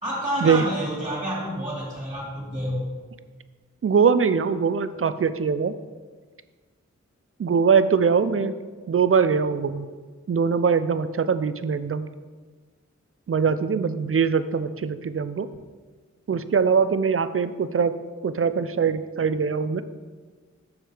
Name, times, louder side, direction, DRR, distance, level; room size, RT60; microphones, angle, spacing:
voice 1, 0.0-2.9, equal, 15° right, -6 dB, 2.7 m, -29 dB
voice 2, 3.8-5.7 7.4-8.5 8.9-9.9 10.3-12.1 13.3-15.5 16.3-17.9 18.2-19.8, right 6 dB, 45° right, 13 dB, 0.5 m, -22 dB
6.4 x 6.3 x 5.0 m, 1.4 s
wide cardioid pair, 55°, 30 cm